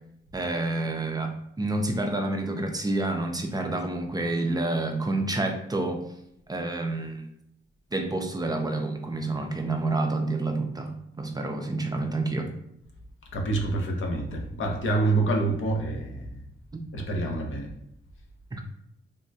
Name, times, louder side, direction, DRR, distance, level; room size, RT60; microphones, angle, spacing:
voice 1, 0.3-6.0 6.5-7.2 7.9-12.5 18.5-18.6, right 2 dB, 20° right, 4 dB, 0.4 m, -28 dB
voice 2, 13.3-16.4 16.9-17.7, right 2 dB, 80° left, 1 dB, 0.7 m, -27 dB
3.5 x 2.1 x 2.6 m, 0.76 s
cardioid pair, 95°, 20 cm